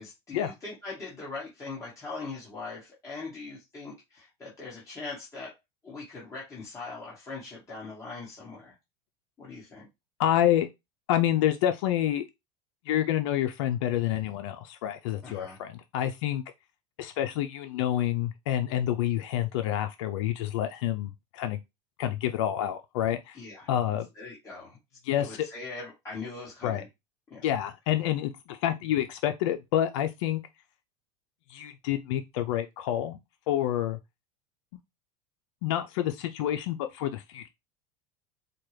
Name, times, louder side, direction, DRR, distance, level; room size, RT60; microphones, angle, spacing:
voice 1, 0.0-5.5 5.8-8.7 9.4-9.9 15.2-15.6 23.3-23.7 24.1-24.8 25.2-26.9 27.3-27.4, left 3 dB, 20° left, 1.3 m, -41 dB
voice 2, 10.2-10.7 11.1-12.3 12.9-16.4 17.0-21.6 22.0-23.4 23.7-24.1 25.0-25.5 26.6-26.8 27.4-30.4 31.5-33.2 33.5-34.0 35.6-37.5, left 11 dB, 80° left, 0.4 m, -28 dB
4.4 x 2.3 x 3.2 m
supercardioid pair, 130°, 15 cm